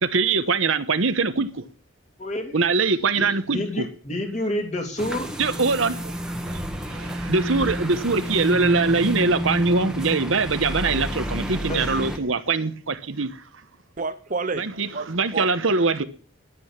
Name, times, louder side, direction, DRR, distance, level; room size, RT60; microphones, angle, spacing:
voice 1, 0.0-1.6 2.5-3.8 5.4-6.6 6.9-13.4 14.6-16.0, right 4 dB, 65° right, 1.1 m, -23 dB
voice 2, 2.2-2.6 3.2-5.3 11.7-11.9, left 1 dB, 35° left, 2.7 m, -29 dB
sound 1, 5.0-12.2, equal, 5° right, 1.3 m, -30 dB
voice 3, 14.0-15.5, right 4 dB, 35° right, 0.7 m, -30 dB
11.5 x 9.8 x 7.4 m
head